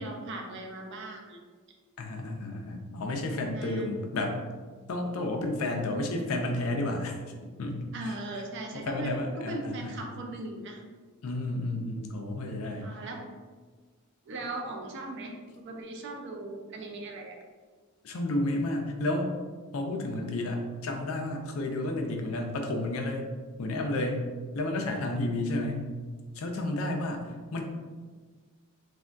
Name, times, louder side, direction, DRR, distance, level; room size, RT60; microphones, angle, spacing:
voice 1, 0.0-1.4 3.5-3.8 7.9-10.8 12.8-13.2 14.3-17.4, right 2 dB, 55° right, 2 dB, 0.5 m, -38 dB
voice 2, 2.0-4.4 4.9-7.1 7.6-7.8 8.7-10.0 11.2-12.9 18.0-19.3 19.7-23.3 23.6-24.3 24.5-25.9 26.4-27.6, left 2 dB, 75° left, 3 dB, 0.4 m, -31 dB
3.4 x 2.2 x 2.5 m, 1.4 s
head